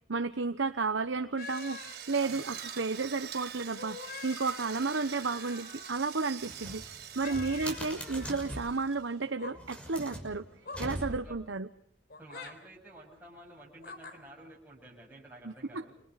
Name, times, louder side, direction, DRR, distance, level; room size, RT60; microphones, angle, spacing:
voice 1, 0.1-1.8 2.1-6.8 7.1-10.4 10.8-11.7 15.4-15.8, right 4 dB, 90° right, 8 dB, 1.0 m, -32 dB
sound 1, 1.4-3.0 3.6-6.0 7.2-8.6 9.2-9.6 10.6-10.9 12.1-12.5 13.8-14.2, left 4 dB, 55° left, 3.8 m, -46 dB
Drill, 1.4-9.2, right 9 dB, 60° right, 4.1 m, -45 dB
sound 2, 6.4-8.8 9.5-11.4, equal, 5° left, 6.3 m, -42 dB
voice 2, 7.3-7.8 11.2-11.4 12.2-15.9, right 1 dB, 10° right, -4 dB, 7.3 m, -51 dB
29.5 x 27.0 x 4.1 m, 0.69 s
head